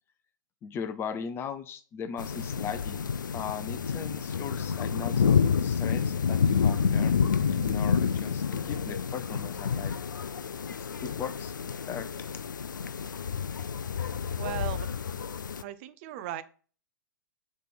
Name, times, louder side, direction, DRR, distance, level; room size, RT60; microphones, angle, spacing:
voice 1, 0.6-3.0 3.3-7.2 7.5-10.0 11.0-11.5 11.9-12.1, left 7 dB, 25° left, 10 dB, 0.6 m, -38 dB
sound 1, 2.2-15.6, left 6 dB, 80° left, 0.4 m, -29 dB
voice 2, 14.4-14.9 15.6-16.4, right 12 dB, 45° right, 13 dB, 0.6 m, -37 dB
6.6 x 3.2 x 6.0 m, 0.40 s
figure-of-eight pair, 110°, 10 cm